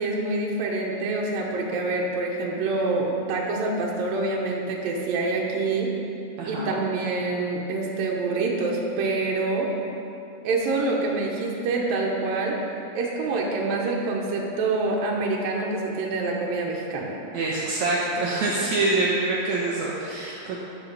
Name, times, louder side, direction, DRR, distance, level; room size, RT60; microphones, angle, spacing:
voice 1, 0.0-5.9 6.5-9.7 10.4-12.6 12.9-17.2, right 3 dB, 90° right, -2 dB, 2.8 m, -26 dB
voice 2, 6.4-6.7 17.3-20.6, right 2 dB, 70° right, -6 dB, 2.3 m, -25 dB
11.0 x 5.7 x 6.8 m, 2.8 s
omnidirectional pair, 3.8 m